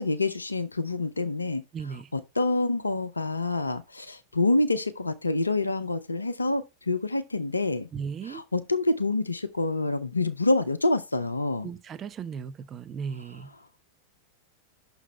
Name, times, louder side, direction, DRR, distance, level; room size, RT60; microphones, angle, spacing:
voice 1, 0.0-1.6 2.1-7.9 8.2-11.7, left 2 dB, 80° left, 0.5 m, -27 dB
voice 2, 1.7-2.1 7.9-8.4 11.6-13.5, right 6 dB, 25° right, 0.5 m, -36 dB
6.1 x 4.0 x 5.4 m
figure-of-eight pair, 90°, 0 cm